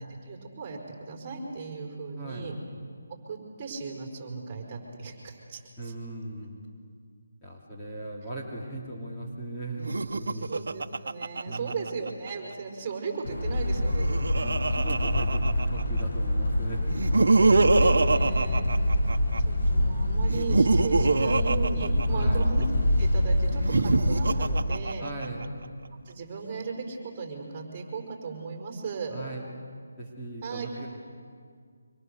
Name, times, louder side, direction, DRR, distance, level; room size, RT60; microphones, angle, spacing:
voice 1, 0.2-2.5 3.2-5.9 10.5-14.5 17.4-18.6 19.4-22.6 23.0-25.0 26.1-29.2 30.4-30.7, right 4 dB, 25° right, 1 dB, 4.8 m, -36 dB
voice 2, 2.2-2.5 5.8-6.6 7.4-10.5 11.5-11.8 14.4-16.9 22.1-22.5 25.0-25.5 29.1-29.5 30.0-30.9, right 2 dB, 10° left, -6 dB, 3.0 m, -38 dB
Laughter, 9.8-12.3 13.6-16.0 16.9-19.4 20.2-22.7 23.5-25.5, right 3 dB, 65° right, 1.2 m, -25 dB
sound 1, 13.2-24.6, left 1 dB, 70° left, 7.3 m, -26 dB
25.5 x 25.0 x 6.8 m, 2.1 s
figure-of-eight pair, 165°, 0 cm